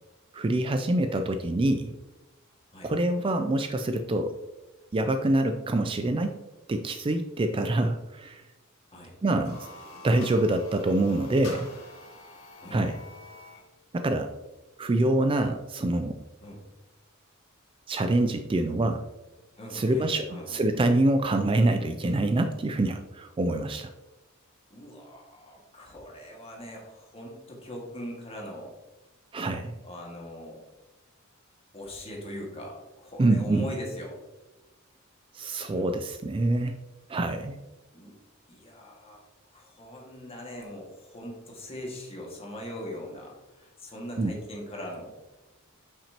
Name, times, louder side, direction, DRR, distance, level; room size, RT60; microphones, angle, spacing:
voice 1, 0.3-1.9 2.8-4.3 4.9-6.3 6.7-8.4 9.2-9.7 10.0-11.7 12.7-12.9 13.9-14.3 14.8-16.2 17.9-19.0 19.7-23.9 29.3-29.7 33.2-33.7 35.3-36.8 37.1-37.6 44.2-44.3, right 2 dB, 25° right, 7 dB, 0.3 m, -25 dB
sound 1, 9.3-13.7, left 2 dB, 80° left, 1.9 m, -46 dB
voice 2, 12.6-12.9 16.4-16.6 19.6-20.6 24.7-28.7 29.8-30.6 31.7-34.2 35.7-35.9 37.9-38.2 38.5-39.2 39.5-45.3, equal, 30° left, -1 dB, 1.8 m, -41 dB
8.4 x 5.8 x 2.9 m, 1.1 s
head